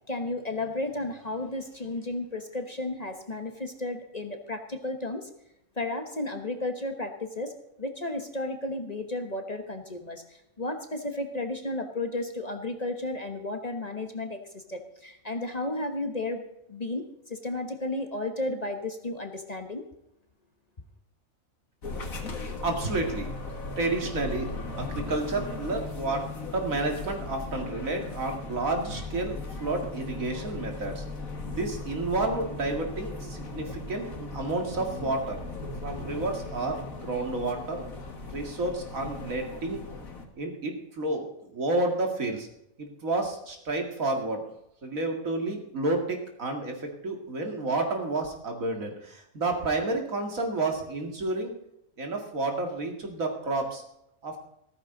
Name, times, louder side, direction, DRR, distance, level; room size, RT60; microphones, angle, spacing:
voice 1, 0.1-5.3 5.8-7.5 7.8-10.2 10.6-16.4 16.7-19.8, left 2 dB, 30° left, 5 dB, 1.2 m, -33 dB
sound 1, 21.8-40.3, left 3 dB, 80° left, 2.2 m, -38 dB
voice 2, 22.6-23.3 23.8-24.5 24.8-26.3 26.5-31.0 31.5-35.4 35.8-37.8 38.3-39.8 40.4-42.5 42.8-44.4 44.8-51.5 52.0-53.8 54.2-54.4, right 2 dB, 75° right, 3 dB, 2.6 m, -30 dB
15.0 x 14.0 x 3.9 m, 0.82 s
omnidirectional pair, 1.4 m